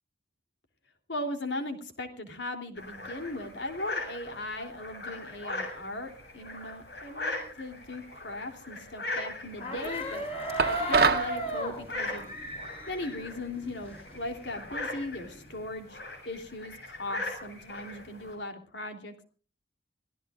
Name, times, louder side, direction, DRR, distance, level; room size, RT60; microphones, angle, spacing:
voice 1, 1.1-10.2 10.7-12.3 12.9-16.0 16.2-19.2, left 1 dB, 85° left, 6 dB, 3.2 m, -38 dB
sound 1, 2.8-18.4, left 2 dB, 70° left, 7.3 m, -40 dB
sound 2, 9.5-14.2 14.5-15.6, right 1 dB, 35° left, 7.0 m, -35 dB
sound 3, 10.6-11.3, right 4 dB, 55° right, 1.1 m, -24 dB
26.0 x 16.0 x 2.5 m, 0.40 s
head